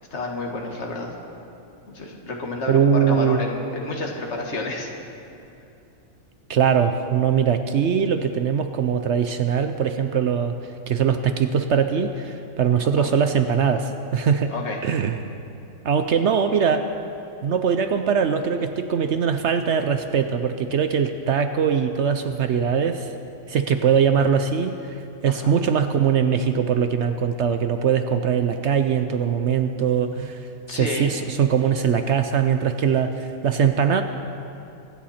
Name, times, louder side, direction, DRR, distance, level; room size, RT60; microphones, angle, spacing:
voice 1, 0.1-1.1 1.9-4.9 13.0-13.1 14.5-14.8 25.3-25.6 30.7-31.1, left 2 dB, 50° left, 0 dB, 2.0 m, -30 dB
voice 2, 2.7-3.4 6.5-10.6 10.9-14.5 14.8-15.3 15.8-16.9 17.4-23.1 23.5-30.4 30.7-34.0, right 7 dB, 60° right, 8 dB, 0.8 m, -21 dB
25.0 x 10.5 x 4.3 m, 2.7 s
omnidirectional pair, 1.5 m